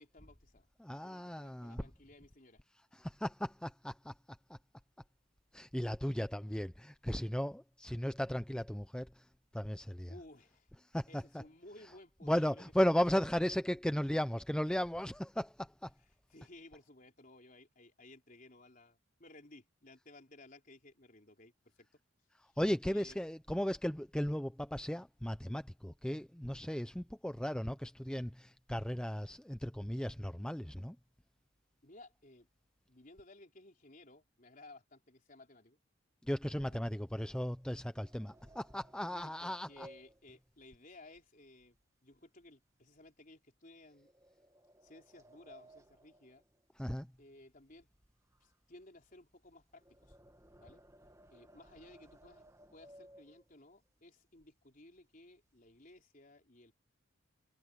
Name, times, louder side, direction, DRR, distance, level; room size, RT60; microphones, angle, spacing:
voice 1, 0.0-0.7 1.0-2.6 10.1-10.7 11.1-12.7 16.3-21.9 22.4-22.6 22.9-23.2 31.8-32.5 32.9-35.8 36.7-36.8 39.1-44.1 44.8-46.4 47.2-47.9 48.4-50.2 50.6-50.8 51.3-52.5 52.7-56.7, left 2 dB, 45° left, 4.1 m, -58 dB
voice 2, 0.8-1.8 2.9-4.1 4.5-4.6 5.5-10.1 10.9-11.2 12.3-15.9 22.6-31.0 36.2-39.9 46.8-47.1, equal, 5° left, 0.5 m, -36 dB
sound 1, 36.5-41.8 42.1-42.5 43.0-43.1 43.9-47.2 47.5-53.8 54.4-54.5 54.8-55.0 55.3-56.0, right 1 dB, 15° right, 2.0 m, -61 dB
head